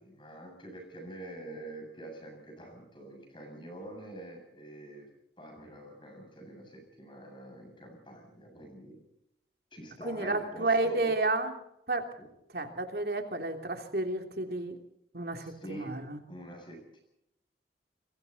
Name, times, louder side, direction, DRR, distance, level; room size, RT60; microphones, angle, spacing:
voice 1, 0.0-5.1 5.4-9.0 9.7-11.1 12.2-12.3 15.4-15.9 16.3-17.0, right 1 dB, 25° left, 3 dB, 7.5 m, -45 dB
voice 2, 10.0-11.5 11.9-12.0 12.5-14.8 15.1-16.2, right 2 dB, 55° right, 4 dB, 3.1 m, -31 dB
28.0 x 22.5 x 4.2 m, 0.80 s
head